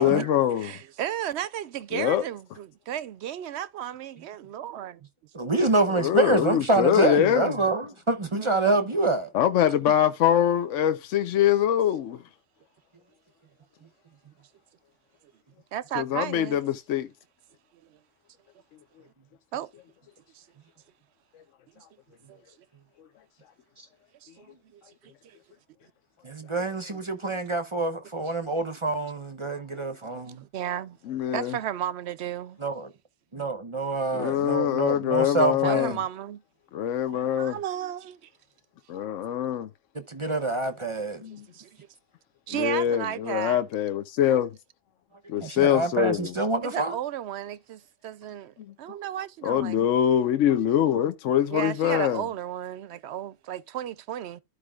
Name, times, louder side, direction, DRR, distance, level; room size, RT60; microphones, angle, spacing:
voice 1, 0.0-0.7 1.9-2.2 5.9-7.5 9.3-12.2 16.0-17.1 31.1-31.6 34.1-35.9 36.7-37.6 38.9-39.7 41.2-41.4 42.6-44.5 45.3-46.3 49.4-52.2, left 10 dB, 70° left, 1.0 m, -24 dB
voice 2, 0.6-5.0 8.3-8.9 15.7-16.6 17.9-18.0 19.5-19.7 20.3-20.4 21.8-21.9 22.3-22.4 24.2-25.4 29.9-31.0 31.3-32.6 35.6-36.4 37.1-38.3 41.3-41.8 42.5-43.6 46.6-49.8 51.5-54.4, right 11 dB, 65° right, 0.8 m, -34 dB
voice 3, 5.3-9.3 23.8-23.9 26.2-30.4 32.6-32.9 33.3-36.0 39.9-41.2 45.4-46.9, right 3 dB, 30° right, 0.6 m, -26 dB
13.5 x 4.8 x 2.3 m
omnidirectional pair, 1.4 m